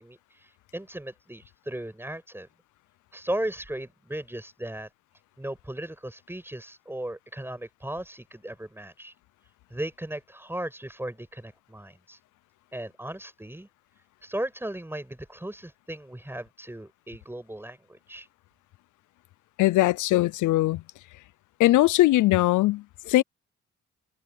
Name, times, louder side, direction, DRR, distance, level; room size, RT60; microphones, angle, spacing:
voice 1, 0.0-2.5 3.1-4.9 5.4-9.1 9.7-12.2 12.7-13.7 14.2-18.3, right 1 dB, 5° right, 7.2 m, -36 dB
voice 2, 19.6-20.8 21.6-23.2, left 17 dB, 80° left, 0.6 m, -21 dB
cardioid pair, 90°, 30 cm